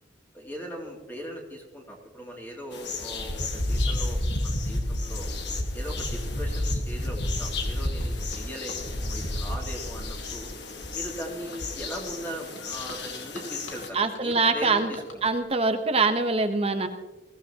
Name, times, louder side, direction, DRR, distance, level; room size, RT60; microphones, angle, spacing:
voice 1, 0.3-5.3 5.7-10.5 10.9-15.2, equal, 10° left, -1 dB, 2.7 m, -39 dB
sound 1, 2.7-13.9, left 1 dB, 55° left, 1.6 m, -31 dB
sound 2, 8.0-8.8 12.5-15.4, left 2 dB, 80° left, 2.8 m, -46 dB
voice 2, 13.9-14.9 15.2-16.9, right 3 dB, 30° right, 7 dB, 1.0 m, -24 dB
22.0 x 16.0 x 2.9 m, 1.2 s
head